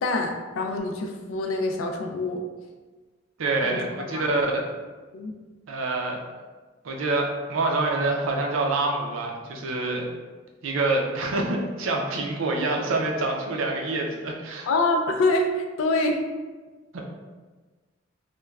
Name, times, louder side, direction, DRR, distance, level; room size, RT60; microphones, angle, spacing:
voice 1, 0.0-2.4 3.6-3.8 4.1-4.3 5.1-5.3 14.7-16.2, left 2 dB, 90° left, 4 dB, 0.4 m, -25 dB
voice 2, 3.4-4.6 5.7-6.2 6.8-10.1 10.6-14.7 16.9-17.0, right 2 dB, 90° right, 1 dB, 0.5 m, -26 dB
3.1 x 2.1 x 2.3 m, 1.3 s
head